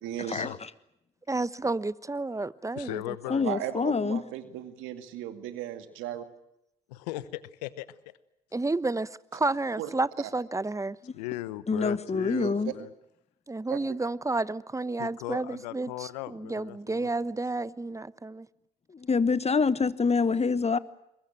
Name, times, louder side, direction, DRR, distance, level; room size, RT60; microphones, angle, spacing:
voice 1, 0.0-0.5 3.4-6.3 9.8-9.9 12.3-12.7 13.7-13.8, right 12 dB, 75° right, 2.2 m, -36 dB
voice 2, 1.3-3.5 8.5-11.0 13.5-18.5, right 2 dB, 15° right, 1.0 m, -31 dB
voice 3, 2.8-3.4 6.9-7.9 11.1-12.9 15.0-17.1, left 16 dB, 85° left, 0.9 m, -37 dB
voice 4, 3.3-4.2 11.7-12.7 18.9-20.8, left 4 dB, 30° left, 1.3 m, -26 dB
23.0 x 20.5 x 8.9 m
hypercardioid pair, 50°, 21 cm